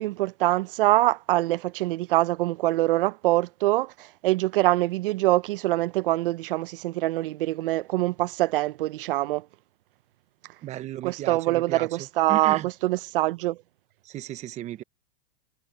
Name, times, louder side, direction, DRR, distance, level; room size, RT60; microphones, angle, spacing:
voice 1, 0.0-9.5 11.0-13.6, right 17 dB, 60° right, 0.6 m, -24 dB
voice 2, 10.6-11.9 12.3-12.7 14.0-14.8, right 13 dB, 20° right, 0.8 m, -35 dB
supercardioid pair, 150°, 32 cm